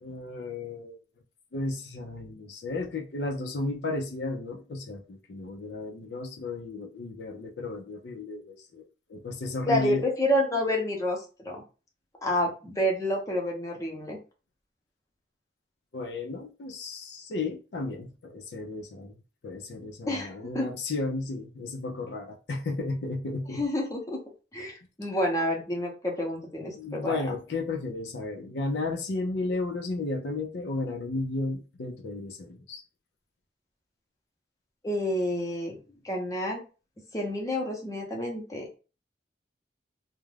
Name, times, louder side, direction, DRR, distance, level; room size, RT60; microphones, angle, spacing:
voice 1, 0.0-1.0 1.5-8.8 9.1-10.0 15.9-19.2 19.4-23.6 26.8-32.8, left 2 dB, 70° left, 0.5 m, -33 dB
voice 2, 9.7-11.6 12.2-14.2 20.0-20.7 23.5-24.2 24.5-27.4 34.8-35.8 36.0-36.6 37.1-38.8, left 1 dB, 20° left, 0.6 m, -29 dB
2.4 x 2.1 x 3.2 m
head